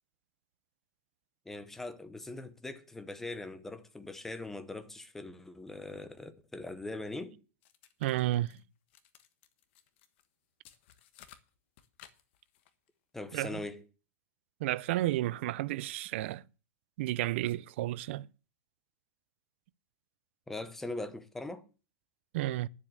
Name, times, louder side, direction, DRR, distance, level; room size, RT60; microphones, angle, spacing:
voice 1, 1.5-7.4 13.1-13.8 20.5-21.6, left 2 dB, 5° left, 0.8 m, -41 dB
sound 1, 7.6-8.6 8.9-10.3 10.6-12.9, left 11 dB, 50° left, 1.3 m, -59 dB
voice 2, 8.0-8.6 13.3-13.6 14.6-16.4 17.0-18.3 22.3-22.7, right 15 dB, 50° right, 0.5 m, -32 dB
10.5 x 7.5 x 7.9 m
supercardioid pair, 170°, 8 cm